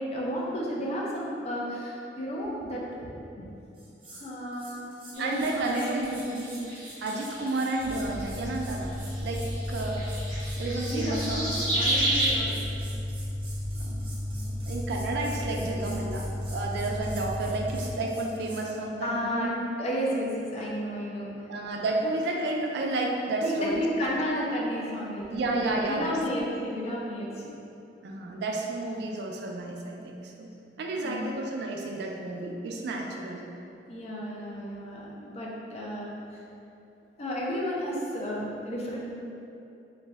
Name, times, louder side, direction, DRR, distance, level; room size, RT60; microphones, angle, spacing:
voice 1, 0.0-3.5 4.2-6.0 10.9-12.6 15.8-15.9 19.0-19.5 19.8-21.3 23.4-25.4 25.9-27.3 31.0-31.3 33.9-36.1 37.2-39.1, equal, 35° left, -4 dB, 0.4 m, -32 dB
sound 1, 3.7-4.3 4.5-18.6, right 2 dB, 30° right, 0.7 m, -48 dB
sound 2, 5.1-8.5 9.0-12.3, right 1 dB, 80° left, 1.2 m, -32 dB
voice 2, 5.2-6.7 7.0-9.0 9.2-10.1 10.6-11.6 13.8-19.6 21.5-23.8 24.1-24.2 25.3-26.2 28.0-30.5 30.8-33.5, right 2 dB, 65° right, 0 dB, 0.3 m, -31 dB
sound 3, 7.8-17.7, left 1 dB, 55° left, 0.8 m, -34 dB
2.6 x 2.2 x 3.2 m, 2.7 s
head